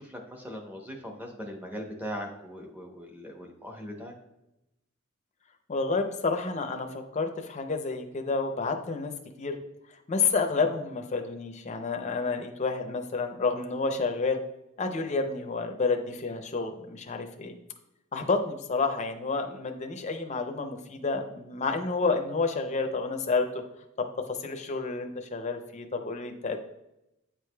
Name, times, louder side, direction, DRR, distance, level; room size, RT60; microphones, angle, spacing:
voice 1, 0.0-4.1, equal, 10° right, 2 dB, 0.8 m, -40 dB
voice 2, 5.7-9.1 9.4-9.5 10.1-14.4 14.8-17.6 18.1-23.6 24.0-26.6, left 4 dB, 35° left, 5 dB, 0.5 m, -30 dB
8.9 x 4.8 x 2.2 m, 0.87 s
head